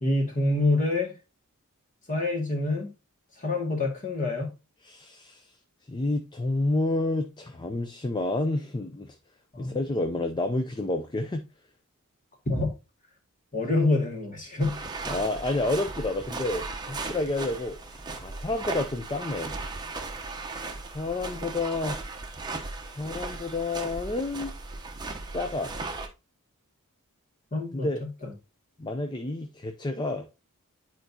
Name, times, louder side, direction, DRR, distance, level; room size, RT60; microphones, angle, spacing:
voice 1, 0.0-1.1 2.1-2.9 3.4-4.5 9.5-9.8 12.5-12.7 13.5-14.8 27.5-27.9 28.2-28.3, left 2 dB, 35° left, 2.0 m, -26 dB
voice 2, 4.8-5.5 5.9-9.2 9.6-11.5 15.1-19.5 20.8-22.0 22.8-24.5 25.3-25.7 27.7-28.0 28.8-30.3, left 2 dB, 20° left, 0.5 m, -30 dB
sound 1, 14.6-26.1, right 3 dB, 20° right, 0.8 m, -37 dB
10.0 x 4.5 x 2.7 m
head